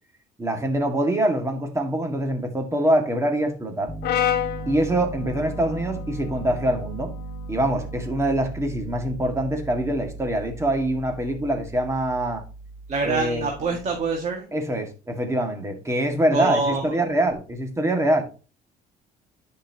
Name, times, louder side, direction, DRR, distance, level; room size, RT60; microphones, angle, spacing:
voice 1, 0.4-3.9 4.7-7.1 7.5-12.4 13.0-13.5 14.5-18.2, right 1 dB, 15° right, 2.0 m, -24 dB
Piano, 3.9-14.1, right 2 dB, 5° left, 0.9 m, -37 dB
Brass instrument, 4.0-8.3, left 10 dB, 75° left, 1.1 m, -31 dB
voice 2, 12.9-14.5 16.3-16.9, right 3 dB, 40° right, 1.9 m, -25 dB
10.0 x 5.7 x 2.9 m
cardioid pair, 110°, 17 cm